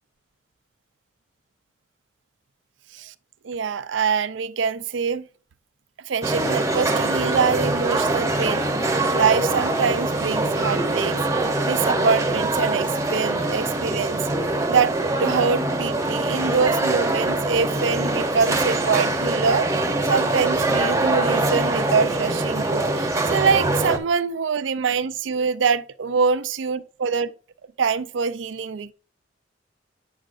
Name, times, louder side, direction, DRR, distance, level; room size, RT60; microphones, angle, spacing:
voice 1, 3.4-5.3 6.1-11.2 11.6-14.2 14.7-14.9 15.2-19.7 20.1-27.3 27.8-28.9, right 5 dB, 85° right, 0.5 m, -24 dB
sound 1, 6.2-24.0, right 2 dB, 15° right, 0.8 m, -23 dB
9.0 x 6.4 x 2.5 m
head